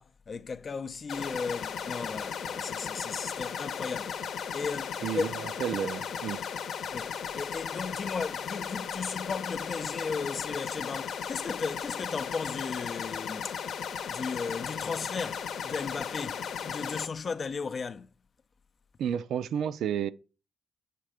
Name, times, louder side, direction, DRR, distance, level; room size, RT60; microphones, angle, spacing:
voice 1, 0.0-4.1 4.5-5.3 6.9-13.5 14.1-18.1, left 5 dB, 40° left, 0.5 m, -35 dB
sound 1, 1.1-17.1, left 7 dB, 70° left, 0.8 m, -36 dB
voice 2, 5.0-6.4 19.0-20.1, right 8 dB, 70° right, 0.5 m, -31 dB
7.5 x 3.3 x 5.0 m
cardioid pair, 90°, 0 cm